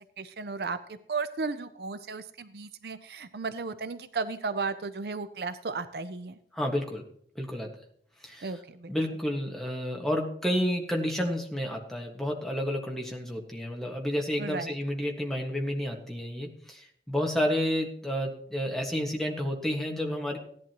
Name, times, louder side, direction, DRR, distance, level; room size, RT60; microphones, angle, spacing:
voice 1, 0.2-6.4 8.4-8.9 14.4-14.7, right 4 dB, 65° right, 12 dB, 0.6 m, -34 dB
voice 2, 6.5-7.0 7.3-7.7 8.2-8.5 8.9-20.4, equal, ahead, 0 dB, 1.5 m, -30 dB
16.5 x 11.0 x 3.0 m, 0.65 s
head